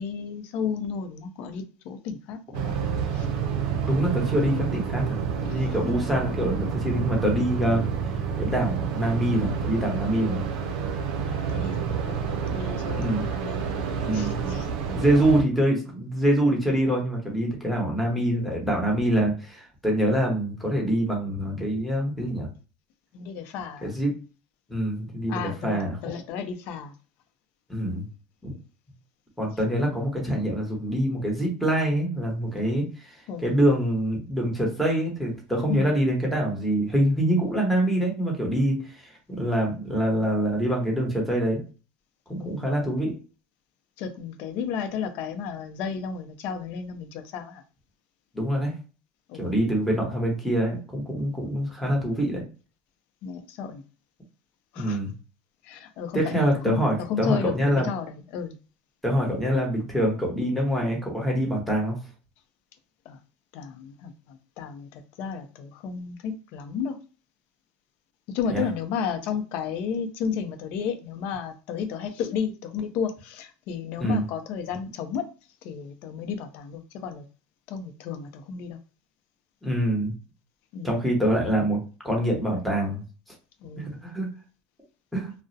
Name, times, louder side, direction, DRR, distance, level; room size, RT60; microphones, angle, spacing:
voice 1, 0.0-3.3 5.5-5.8 6.3-6.4 11.2-15.1 23.1-23.9 25.3-26.9 33.3-33.5 35.7-35.9 42.4-42.7 44.0-47.6 49.3-49.5 53.2-53.8 54.7-55.0 55.6-56.8 57.1-58.5 63.1-63.2 63.5-67.0 68.3-75.2 75.6-77.2 77.7-78.8 80.7-80.9 83.6-84.0, left 6 dB, 65° left, 0.5 m, -33 dB
sound 1, 2.5-15.4, right 6 dB, 80° right, 0.4 m, -29 dB
voice 2, 3.9-7.8 8.4-10.4 12.9-13.3 14.0-14.6 14.9-22.5 23.8-24.1 24.7-26.0 27.7-28.1 28.4-28.5 29.4-33.2 33.4-41.6 42.3-43.2 48.3-48.7 49.4-52.4 54.8-55.1 56.1-57.9 59.0-62.0 68.5-68.6 74.0-74.2 79.6-80.2 80.8-81.8 82.0-83.0 83.8-84.3 85.1-85.3, right 1 dB, ahead, 1.0 m, -25 dB
2.3 x 2.0 x 2.6 m
supercardioid pair, 120°, 3 cm